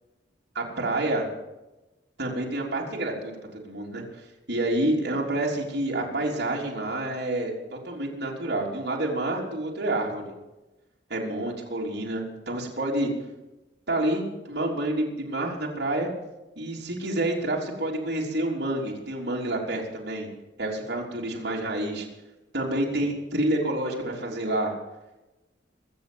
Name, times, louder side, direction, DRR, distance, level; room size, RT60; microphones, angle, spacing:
voice 1, 0.6-1.3 2.2-4.0 4.5-10.3 11.1-13.1 13.9-16.1 16.6-20.3 20.6-22.1 22.5-24.7, right 1 dB, 60° right, -3 dB, 3.6 m, -28 dB
23.0 x 7.8 x 7.0 m, 1.0 s
head